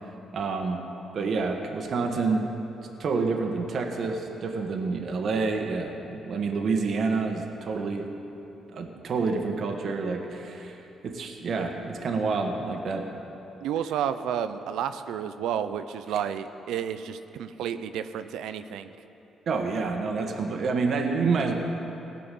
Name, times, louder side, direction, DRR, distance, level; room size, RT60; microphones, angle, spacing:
voice 1, 0.3-0.8 1.1-2.5 3.0-8.1 8.7-13.1 19.5-21.5, right 4 dB, 60° right, 3 dB, 1.4 m, -28 dB
voice 2, 13.6-18.9, right 9 dB, 90° right, 10 dB, 0.5 m, -31 dB
17.5 x 5.9 x 9.2 m, 3.0 s
cardioid pair, 90°, 0 cm